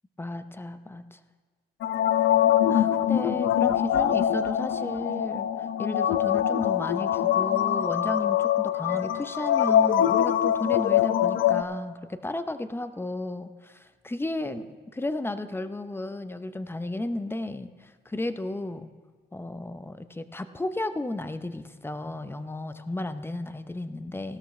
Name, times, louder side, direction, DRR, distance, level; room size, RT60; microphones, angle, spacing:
voice 1, 0.2-1.2 2.7-18.9 19.3-24.4, left 2 dB, 10° left, 11 dB, 0.6 m, -34 dB
sound 1, 1.8-11.6, left 10 dB, 85° left, 0.6 m, -23 dB
16.5 x 13.0 x 3.2 m, 1.5 s
cardioid pair, 90°, 20 cm